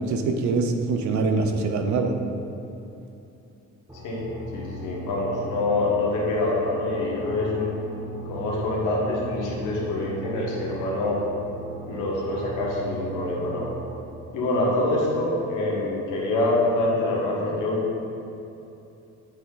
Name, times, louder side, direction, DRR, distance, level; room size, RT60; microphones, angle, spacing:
voice 1, 0.0-2.1, right 3 dB, 70° right, 5 dB, 0.7 m, -24 dB
sound 1, 3.9-14.0, right 1 dB, 10° right, 1.0 m, -38 dB
voice 2, 4.5-7.7 8.3-11.2 11.9-13.7 14.3-17.8, left 2 dB, 90° left, -3 dB, 1.3 m, -25 dB
8.1 x 3.3 x 3.8 m, 2.8 s
cardioid pair, 90°, 30 cm